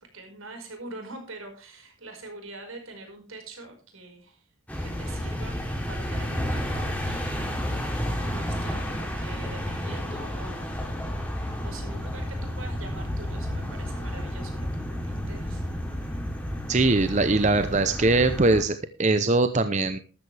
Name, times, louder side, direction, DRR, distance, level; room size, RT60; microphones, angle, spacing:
voice 1, 0.0-4.4 4.8-5.6 5.9-10.9 11.3-15.6, right 2 dB, 80° right, 4 dB, 5.2 m, -44 dB
sound 1, 4.7-18.6, equal, 5° left, 3.1 m, -31 dB
voice 2, 16.7-20.0, right 2 dB, 35° right, 10 dB, 0.7 m, -22 dB
13.5 x 13.0 x 3.4 m, 0.36 s
head